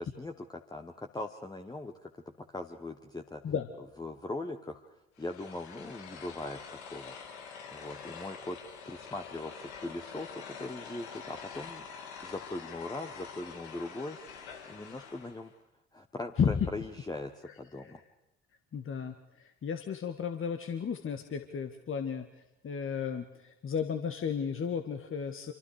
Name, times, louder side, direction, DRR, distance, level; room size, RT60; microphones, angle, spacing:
voice 1, 0.0-3.5 4.0-7.1 7.7-8.6 8.8-11.9 12.2-14.2 14.7-15.5 15.9-18.0, left 2 dB, 10° left, 5 dB, 1.5 m, -40 dB
sound 1, 5.2-15.5, left 6 dB, 80° left, 2.4 m, -46 dB
voice 2, 18.7-22.3 22.6-25.5, left 7 dB, 40° left, 7 dB, 1.7 m, -33 dB
26.5 x 25.0 x 5.0 m, 0.88 s
figure-of-eight pair, 50°, 33 cm